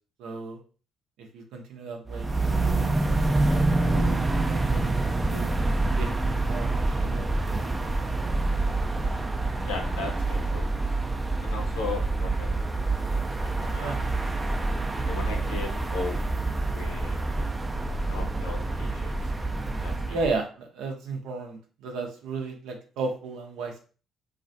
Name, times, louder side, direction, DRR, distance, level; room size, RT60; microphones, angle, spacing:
voice 1, 0.2-0.6 1.2-2.9 3.8-5.1 5.3-5.6 5.9-6.1 6.4-7.5 7.8-7.9 13.8-14.0 20.1-23.8, right 3 dB, 75° right, 2 dB, 0.6 m, -34 dB
sound 1, 2.1-20.4, right 2 dB, 25° right, 0.4 m, -27 dB
voice 2, 9.7-10.6 11.4-12.6 13.4-14.1 15.0-16.2 16.7-17.2 18.0-19.1 19.8-20.2, left 4 dB, 80° left, 2 dB, 0.7 m, -37 dB
2.4 x 2.1 x 2.6 m, 0.38 s
hypercardioid pair, 50°, 0 cm